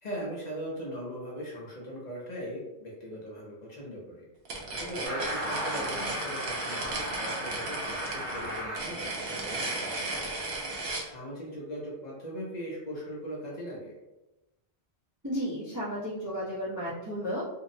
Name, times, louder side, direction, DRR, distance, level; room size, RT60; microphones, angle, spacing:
voice 1, 0.0-4.2 4.8-10.3 11.0-13.9, equal, 45° left, -4 dB, 0.6 m, -39 dB
sound 1, 4.5-11.1, right 2 dB, 65° right, 0.8 m, -35 dB
sound 2, 5.0-8.8, equal, 85° right, 1.0 m, -36 dB
voice 2, 15.2-17.4, equal, 20° right, -10 dB, 0.6 m, -33 dB
2.7 x 2.0 x 2.5 m, 1.0 s
omnidirectional pair, 1.1 m